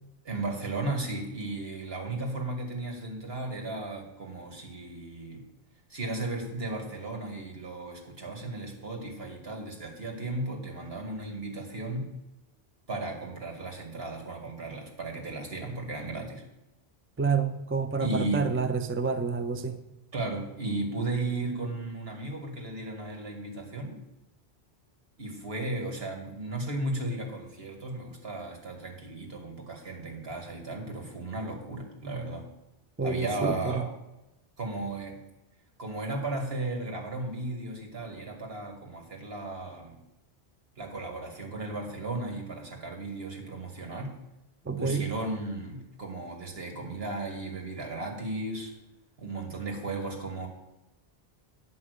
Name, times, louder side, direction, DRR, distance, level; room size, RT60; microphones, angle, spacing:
voice 1, 0.3-5.4 5.9-12.1 12.9-16.4 18.0-18.5 20.1-24.0 25.2-32.5 33.0-33.9 34.6-35.2 35.8-40.0 40.8-44.1 44.8-48.7 49.2-50.5, right 2 dB, 70° right, 2 dB, 2.2 m, -35 dB
voice 2, 17.2-19.8 33.0-33.9 44.6-45.1, right 4 dB, 15° right, 8 dB, 0.4 m, -28 dB
9.9 x 5.5 x 8.1 m, 0.95 s
omnidirectional pair, 1.1 m